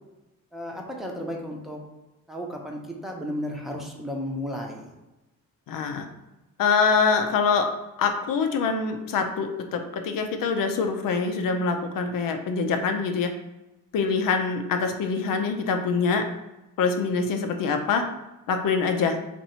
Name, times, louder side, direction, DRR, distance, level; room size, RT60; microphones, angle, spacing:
voice 1, 0.5-1.8 2.3-4.9, equal, ahead, -1 dB, 0.8 m, -33 dB
voice 2, 5.7-6.1 6.6-7.7 8.0-13.3 13.9-16.2 16.8-18.0 18.5-19.2, left 5 dB, 70° left, 5 dB, 0.6 m, -24 dB
2.8 x 2.6 x 4.3 m, 0.99 s
cardioid pair, 90°, 35 cm